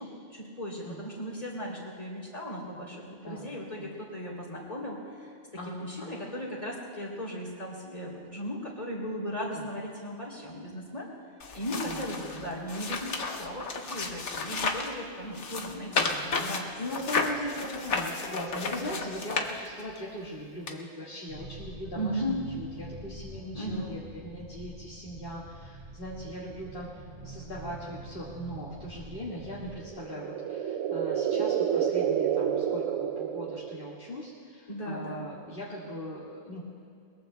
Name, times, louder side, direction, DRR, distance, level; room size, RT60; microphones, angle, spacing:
voice 1, 0.0-5.4 5.7-11.1 11.5-16.7 18.8-19.0 21.9-22.5 23.5-23.9 34.7-35.3, equal, 30° left, -4 dB, 3.3 m, -37 dB
voice 2, 3.2-3.9 5.5-6.2 9.5-9.7 11.8-12.5 15.9-16.4 16.8-36.6, equal, 45° left, -7 dB, 2.1 m, -40 dB
sound 1, 11.4-14.9 15.3-20.0 20.7-20.8, left 4 dB, 65° left, 1.4 m, -32 dB
sound 2, 21.3-29.8, right 2 dB, 45° right, 4.0 m, -45 dB
sound 3, 29.9-34.1, right 8 dB, 85° right, 1.0 m, -29 dB
22.0 x 21.5 x 2.3 m, 2.4 s
omnidirectional pair, 1.3 m